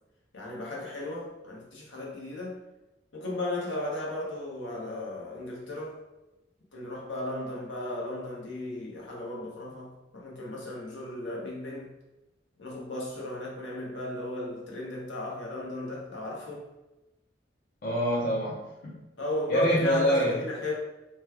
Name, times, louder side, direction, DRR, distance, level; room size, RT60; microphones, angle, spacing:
voice 1, 0.3-2.6 3.1-6.0 6.7-11.9 12.6-16.7 19.2-20.7, left 1 dB, 75° left, -3 dB, 0.8 m, -35 dB
voice 2, 17.8-19.0 19.5-20.4, equal, 50° left, -5 dB, 0.6 m, -26 dB
3.1 x 2.2 x 3.3 m, 0.99 s
head